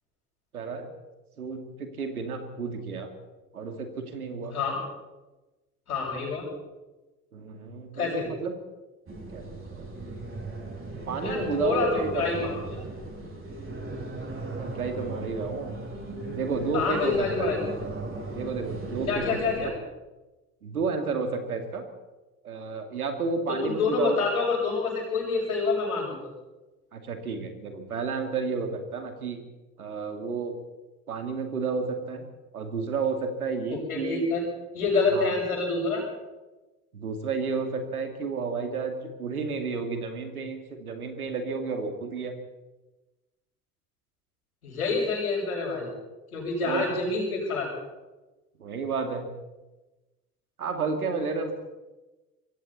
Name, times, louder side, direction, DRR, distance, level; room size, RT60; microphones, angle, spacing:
voice 1, 0.5-0.9 1.4-3.1 3.5-4.5 7.3-8.5 9.3-9.9 11.1-12.4 14.6-15.7 16.3-17.5 18.3-19.4 19.6-19.7 20.6-21.8 22.4-24.2 26.9-29.4 29.8-30.6 31.1-32.2 32.5-34.3 35.1-35.3 36.9-42.3 46.7-46.9 48.6-49.3 50.6-51.5, right 4 dB, 80° right, 6 dB, 2.7 m, -31 dB
voice 2, 5.9-6.4 7.9-8.3 11.2-12.8 16.7-17.6 19.1-19.7 23.5-26.2 33.7-34.4 34.7-36.0 44.6-45.9 46.3-47.7, left 4 dB, 75° left, -7 dB, 6.7 m, -27 dB
sound 1, 9.1-19.7, right 2 dB, 30° right, 7.7 m, -37 dB
25.5 x 23.5 x 4.3 m, 1.1 s
figure-of-eight pair, 60°, 43 cm